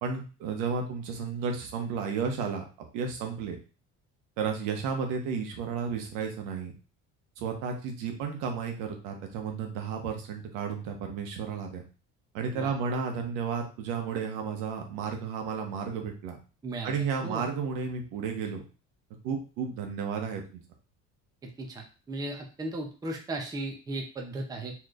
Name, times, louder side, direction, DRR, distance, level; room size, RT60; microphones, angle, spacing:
voice 1, 0.0-2.6 2.9-3.6 4.4-6.7 7.4-11.8 12.3-16.4 16.8-18.6 19.2-20.6, right 6 dB, 85° right, 3 dB, 1.1 m, -32 dB
voice 2, 16.6-17.5 21.4-24.7, right 2 dB, 10° right, 1 dB, 0.6 m, -36 dB
4.3 x 3.1 x 2.5 m, 0.34 s
cardioid pair, 155°, 30 cm